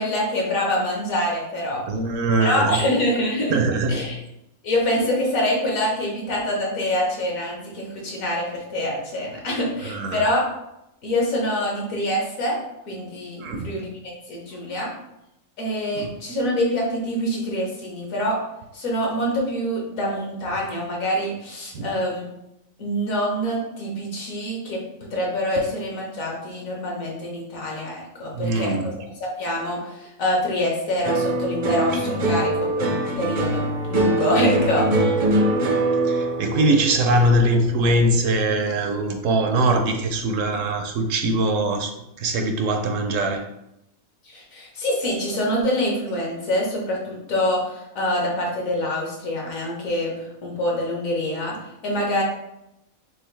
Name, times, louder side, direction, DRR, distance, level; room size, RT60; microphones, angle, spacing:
voice 1, 0.0-1.8 2.4-3.6 3.9-4.2 4.6-10.5 11.0-12.6 12.9-14.9 15.6-18.4 18.7-22.2 22.8-34.9 44.2-51.6 51.8-52.2, left 1 dB, 70° left, -2 dB, 1.6 m, -25 dB
voice 2, 1.9-2.8 3.5-4.1 9.9-10.2 13.4-13.7 16.0-16.1 21.7-21.9 28.3-29.0 36.1-41.9 42.2-43.4, right 2 dB, 70° right, 5 dB, 0.9 m, -22 dB
sound 1, 31.0-39.5 39.8-40.5, right 2 dB, 50° right, 0.5 m, -24 dB
6.2 x 2.4 x 3.3 m, 0.87 s
omnidirectional pair, 1.5 m